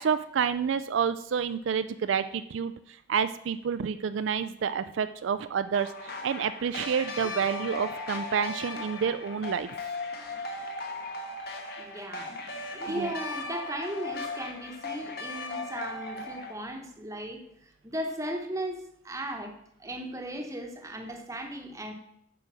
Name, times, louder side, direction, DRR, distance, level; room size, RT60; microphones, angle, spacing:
voice 1, 0.0-9.7 13.0-13.1, right 7 dB, 70° right, 12 dB, 0.4 m, -29 dB
sound 1, 5.7-16.5, left 2 dB, 55° left, 1.2 m, -37 dB
voice 2, 11.8-12.3 12.7-17.4 17.8-19.5 19.8-21.9, right 1 dB, 15° right, 4 dB, 1.0 m, -36 dB
8.5 x 5.0 x 6.1 m, 0.75 s
head